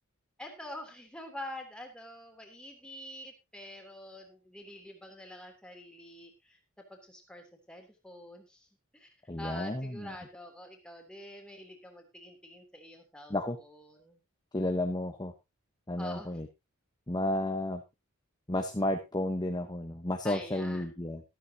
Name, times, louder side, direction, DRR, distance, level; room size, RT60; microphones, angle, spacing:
voice 1, 0.4-6.6 6.9-8.7 8.9-9.1 9.4-14.2 16.0-16.4 20.2-20.9, left 1 dB, 5° left, 3 dB, 3.1 m, -46 dB
voice 2, 9.3-10.1 13.3-13.6 14.5-15.3 15.9-16.5 17.1-17.8 18.5-21.2, left 1 dB, 20° left, 5 dB, 1.1 m, -32 dB
13.5 x 13.0 x 2.9 m, 0.23 s
head